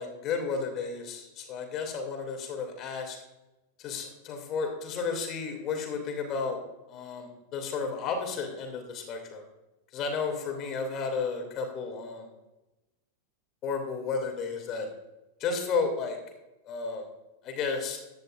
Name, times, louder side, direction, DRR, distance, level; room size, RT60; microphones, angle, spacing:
voice 1, 0.0-3.2 3.8-6.6 6.9-9.4 9.9-12.3 13.6-14.9 15.4-16.2 16.6-17.1 17.4-18.0, left 5 dB, 35° left, 3 dB, 2.5 m, -32 dB
15.5 x 10.5 x 2.5 m, 1.0 s
figure-of-eight pair, 90°, 0 cm